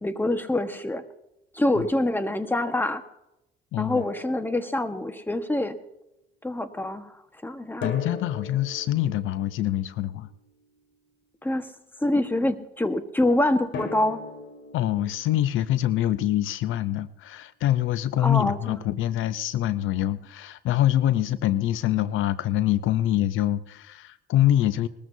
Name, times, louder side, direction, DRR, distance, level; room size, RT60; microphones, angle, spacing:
voice 1, 0.0-1.0 1.5-3.0 3.8-5.8 6.4-7.2 7.4-7.9 11.4-11.7 12.0-14.2 18.2-18.8, left 1 dB, 10° left, 8 dB, 1.3 m, -25 dB
voice 2, 3.7-4.0 7.8-10.3 14.7-24.9, left 12 dB, 85° left, 14 dB, 0.6 m, -25 dB
Drum, 3.9-5.3 7.8-10.8 13.7-16.6, left 5 dB, 70° left, 2.2 m, -40 dB
21.0 x 13.5 x 2.7 m, 0.87 s
cardioid pair, 90°, 20 cm